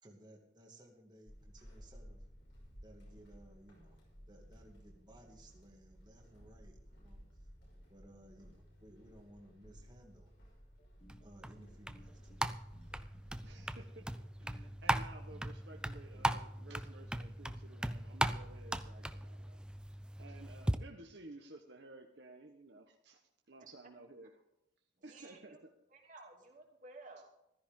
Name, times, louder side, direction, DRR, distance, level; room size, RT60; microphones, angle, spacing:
voice 1, 0.0-2.2 2.8-4.0 4.3-7.2 7.9-10.3 11.2-12.5, right 1 dB, 20° right, 0 dB, 2.2 m, -59 dB
Walk footsteps / Squeak, 1.3-13.9, equal, 65° left, 5.8 m, -57 dB
sound 1, 10.8-17.6, equal, 35° left, 1.8 m, -64 dB
sound 2, 11.1-20.8, right 1 dB, 5° right, 0.4 m, -39 dB
voice 2, 13.4-19.6 20.2-23.2 23.5-24.3 25.0-25.7, right 2 dB, 60° right, 2 dB, 1.2 m, -55 dB
voice 3, 23.6-23.9 25.0-25.6 25.9-27.3, right 3 dB, 40° right, 0 dB, 2.9 m, -55 dB
15.0 x 13.5 x 3.7 m, 0.86 s
head